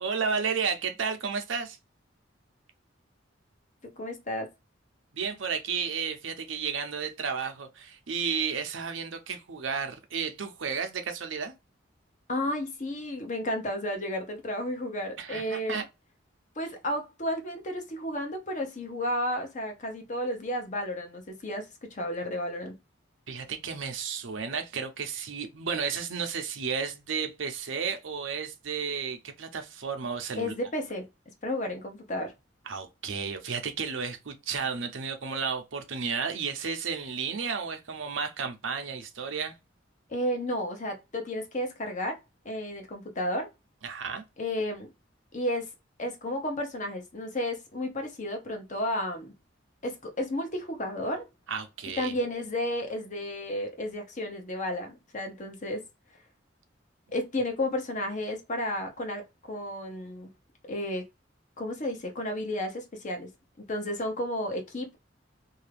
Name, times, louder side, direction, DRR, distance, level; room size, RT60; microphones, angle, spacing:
voice 1, 0.0-1.8 5.1-11.5 15.2-15.9 23.3-30.5 32.7-39.6 43.8-44.2 51.5-52.1, right 6 dB, 85° right, 0.7 m, -32 dB
voice 2, 3.8-4.5 12.3-15.8 16.6-22.7 30.4-31.1 31.4-32.3 40.1-42.2 42.4-43.5 44.4-44.9 45.3-45.7 46.0-49.3 49.8-51.3 52.0-55.8 57.1-60.3 60.7-61.1 61.6-63.3 63.7-65.0, left 1 dB, 40° left, 0.9 m, -32 dB
2.7 x 2.3 x 3.3 m
head